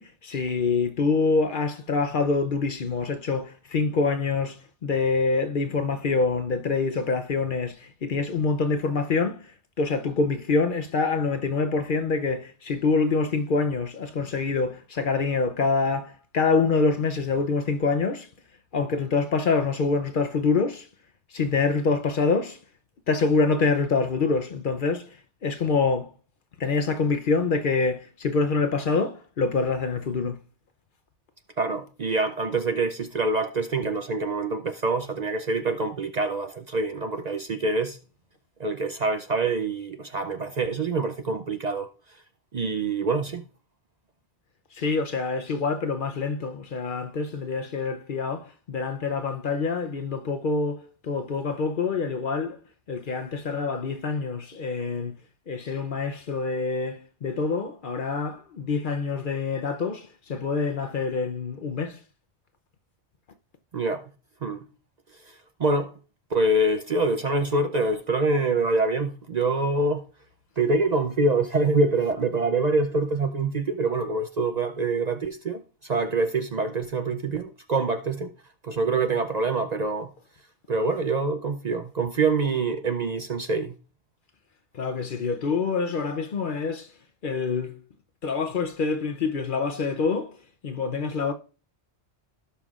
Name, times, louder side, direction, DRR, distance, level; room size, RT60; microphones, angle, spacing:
voice 1, 0.0-9.4 9.8-18.3 18.7-20.9 21.3-22.6 23.1-25.2 25.4-26.1 26.6-30.4 44.7-52.6 52.9-55.1 55.5-62.0 84.7-86.9 87.2-87.8 88.2-90.4 90.6-91.3, left 4 dB, 55° left, 0.8 m, -26 dB
voice 2, 31.6-38.0 38.6-41.9 42.5-43.4 63.7-64.1 64.4-64.7 65.3-65.9 66.3-70.0 70.6-78.3 78.6-80.1 80.7-83.8, right 3 dB, 45° right, 0.6 m, -25 dB
17.0 x 5.7 x 2.4 m
omnidirectional pair, 1.2 m